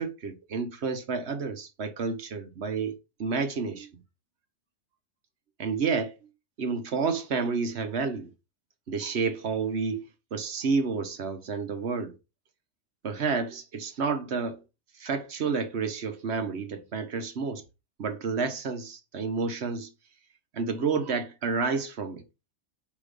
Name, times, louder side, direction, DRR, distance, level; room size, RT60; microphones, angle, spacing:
voice 1, 0.0-3.9 5.6-6.1 6.6-8.3 8.9-12.1 13.0-14.6 15.0-17.6 18.0-19.9 20.5-22.2, right 5 dB, 50° right, 1.2 m, -30 dB
8.5 x 3.1 x 5.2 m
omnidirectional pair, 1.5 m